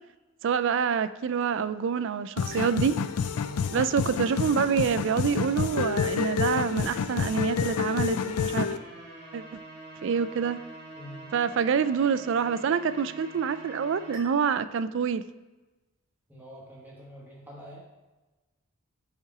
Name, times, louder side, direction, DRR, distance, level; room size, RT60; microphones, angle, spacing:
voice 1, 0.4-3.0 3.7-8.7 9.3-9.4 10.0-10.6 11.3-15.2, right 6 dB, 55° right, 14 dB, 0.3 m, -26 dB
sound 1, 2.4-8.8, left 6 dB, 90° left, 0.4 m, -29 dB
sound 2, 2.5-14.2, right 1 dB, 40° right, 2.2 m, -47 dB
voice 2, 3.4-3.7 10.9-11.3 16.3-17.8, equal, 10° right, -5 dB, 1.1 m, -45 dB
5.6 x 4.7 x 4.8 m, 1.1 s
head